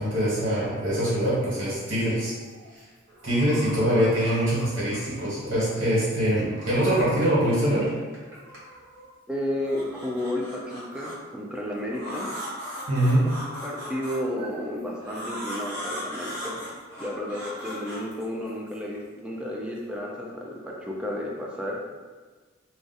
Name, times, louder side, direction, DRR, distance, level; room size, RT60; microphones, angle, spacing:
voice 1, 0.0-2.4 2.7-2.8 3.2-7.9 12.9-13.2, equal, 70° right, -8 dB, 1.4 m, -23 dB
sound 1, 2.2-2.8 3.1-5.1 5.5-7.4 7.7-9.0 9.5-11.1 11.9-14.5 15.0-18.8, equal, 55° right, 1.2 m, -39 dB
voice 2, 9.3-12.3 13.5-16.6 17.0-21.8, left 1 dB, 5° right, -3 dB, 0.4 m, -32 dB
2.5 x 2.4 x 3.9 m, 1.4 s
head